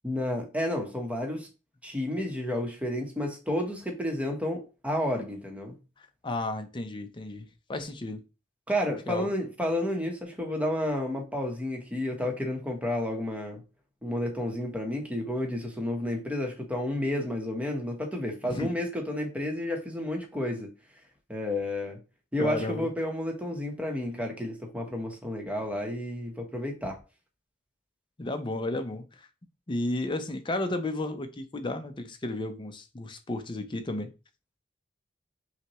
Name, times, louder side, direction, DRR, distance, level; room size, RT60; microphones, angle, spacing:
voice 1, 0.0-1.5 1.8-5.8 8.7-13.6 14.0-20.7 21.3-22.0 22.3-27.0, left 1 dB, 5° right, 0.9 m, -31 dB
voice 2, 6.0-8.2 9.1-9.3 18.4-18.7 22.4-22.9 28.2-29.3 29.7-34.1, left 2 dB, 25° left, 0.5 m, -33 dB
5.7 x 2.2 x 3.0 m
head